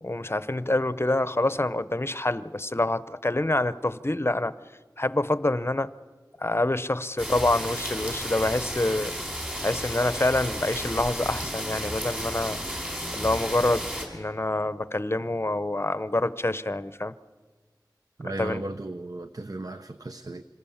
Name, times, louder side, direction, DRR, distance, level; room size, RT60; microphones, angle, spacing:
voice 1, 0.0-4.5 5.0-5.9 6.4-9.1 9.6-12.6 13.1-17.1 18.2-18.6, left 2 dB, 35° left, 15 dB, 0.7 m, -26 dB
sound 1, 7.2-14.0, equal, 20° right, 5.9 m, -33 dB
voice 2, 18.2-20.4, right 2 dB, 55° right, 9 dB, 0.8 m, -35 dB
26.5 x 21.0 x 7.2 m, 1.5 s
wide cardioid pair, 45°, 7 cm